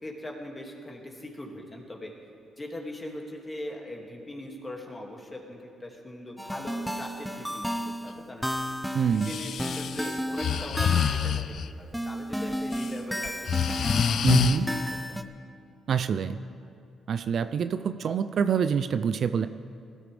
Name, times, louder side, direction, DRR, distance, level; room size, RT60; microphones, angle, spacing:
voice 1, 0.0-2.1 2.6-8.5 9.0-15.2, left 1 dB, 20° left, 0 dB, 2.4 m, -41 dB
sound 1, 6.4-11.4 11.9-15.2, equal, ahead, 0.7 m, -33 dB
voice 2, 8.9-9.3 14.2-14.7 15.9-16.4 17.1-19.5, right 7 dB, 60° right, 11 dB, 0.4 m, -26 dB
Breathing, 9.1-11.7 12.5-12.9 13.3-14.6, left 8 dB, 65° left, 0.5 m, -26 dB
20.0 x 13.0 x 3.5 m, 2.3 s
cardioid pair, 90°, 0 cm